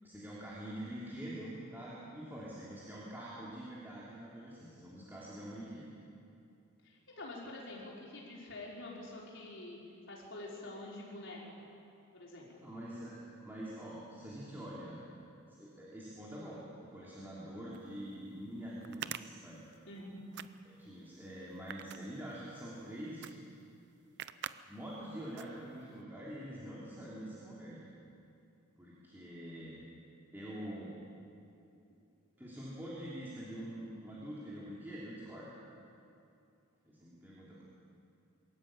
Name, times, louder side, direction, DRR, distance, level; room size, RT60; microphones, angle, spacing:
voice 1, 0.0-5.9 12.6-15.0 15.6-19.6 20.8-23.3 24.7-27.9 28.8-29.8 30.3-30.9 32.4-35.5 36.8-37.6, right 1 dB, 10° right, -8 dB, 3.0 m, -45 dB
voice 2, 6.8-9.8 10.1-11.6 12.1-12.6 19.9-20.2, left 2 dB, 60° left, -4 dB, 4.8 m, -47 dB
sound 1, 17.7-17.8 18.8-20.0 20.3-20.9 21.5-22.6 23.2-23.3 23.6-23.7 24.2-24.6 24.9-25.1 25.4-25.9, right 10 dB, 55° right, 0.6 m, -44 dB
22.5 x 13.5 x 8.9 m, 2.6 s
head